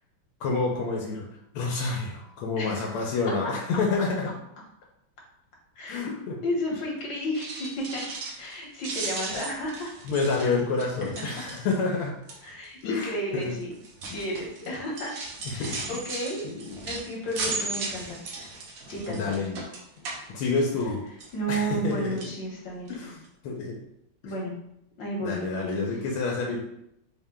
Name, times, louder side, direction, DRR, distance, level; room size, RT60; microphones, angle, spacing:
voice 1, 0.4-1.2 1.5-4.3 5.9-6.4 10.0-12.1 12.8-13.5 15.4-15.7 16.4-16.8 17.5-17.6 19.1-19.6 20.3-21.0 21.5-22.2 22.9-23.8 25.2-26.6, left 4 dB, 85° left, -1 dB, 1.5 m, -28 dB
voice 2, 2.6-2.9 3.4-3.5 5.8-6.0 6.4-8.0 8.4-10.0 11.3-11.4 12.4-13.7 14.1-15.1 15.5-16.5 16.8-18.2 18.9-19.4 21.3-23.1 24.2-24.5 25.0-25.4, equal, 60° left, -2 dB, 1.6 m, -32 dB
sound 1, 7.2-8.5 8.8-11.9 12.3-12.6 13.4-20.9 21.2-21.9 22.2-22.4 22.9-23.0 23.2-23.3, right 3 dB, 70° right, 0.8 m, -37 dB
4.4 x 2.1 x 3.6 m, 0.77 s
omnidirectional pair, 2.4 m